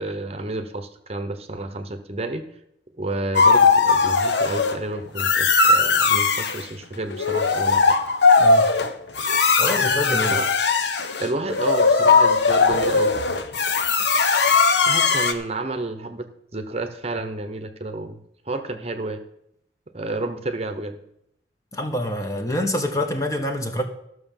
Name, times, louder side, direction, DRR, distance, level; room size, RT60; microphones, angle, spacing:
voice 1, 0.0-2.4 3.0-8.0 10.3-10.5 11.2-13.1 14.9-18.2 18.5-19.2 19.9-21.0, right 2 dB, 35° right, 8 dB, 0.9 m, -30 dB
sound 1, 3.3-4.8 5.2-6.6 7.1-15.3, left 4 dB, 80° left, 1.0 m, -19 dB
voice 2, 9.6-10.4 21.7-23.8, left 1 dB, 20° left, 5 dB, 1.1 m, -26 dB
13.5 x 6.3 x 7.2 m, 0.77 s
head